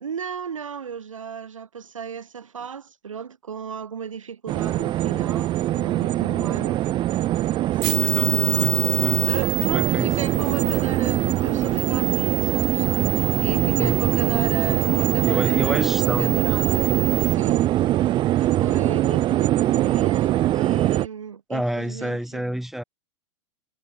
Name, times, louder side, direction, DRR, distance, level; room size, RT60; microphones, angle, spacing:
voice 1, 0.0-6.8 7.7-8.7 9.2-15.8 16.2-16.9 17.3-17.7 18.0-22.5, right 7 dB, 85° right, 1.9 m, -34 dB
sound 1, 4.5-21.1, right 14 dB, 30° right, 0.5 m, -22 dB
sound 2, 7.8-17.3, right 31 dB, 45° right, 1.6 m, -28 dB
voice 2, 8.0-9.3 9.6-10.1 13.7-14.0 15.2-16.4 21.5-22.8, equal, ahead, 6.1 m, -29 dB
hypercardioid pair, 100°, 16 cm